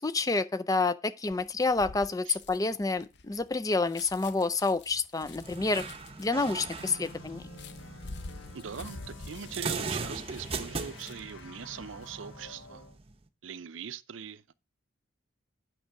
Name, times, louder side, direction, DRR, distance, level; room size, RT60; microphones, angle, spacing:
voice 1, 0.0-5.8 6.2-7.5, left 3 dB, 20° left, 0.4 m, -29 dB
sound 1, 1.3-11.4 11.8-12.1, left 3 dB, 60° left, 0.7 m, -48 dB
sound 2, 5.2-13.2, right 4 dB, 30° right, 0.8 m, -40 dB
sound 3, 6.8-13.0, left 3 dB, 85° left, 1.1 m, -50 dB
voice 2, 8.5-12.8 13.4-14.5, right 7 dB, 85° right, 0.5 m, -41 dB
8.8 x 6.3 x 4.6 m
head